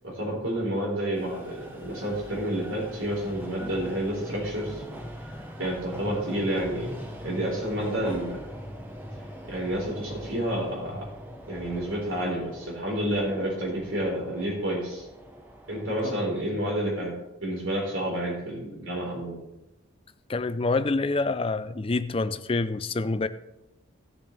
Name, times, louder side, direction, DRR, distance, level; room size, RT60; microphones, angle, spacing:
voice 1, 0.0-4.8 5.6-8.4 9.5-11.1 11.5-15.1 15.7-17.1 17.4-19.4, right 1 dB, 75° right, -2 dB, 4.2 m, -29 dB
sound 1, 1.1-16.0, equal, 10° right, 1.0 m, -42 dB
voice 2, 20.3-23.3, left 3 dB, 25° left, 12 dB, 0.4 m, -27 dB
17.0 x 7.1 x 3.4 m, 0.94 s
head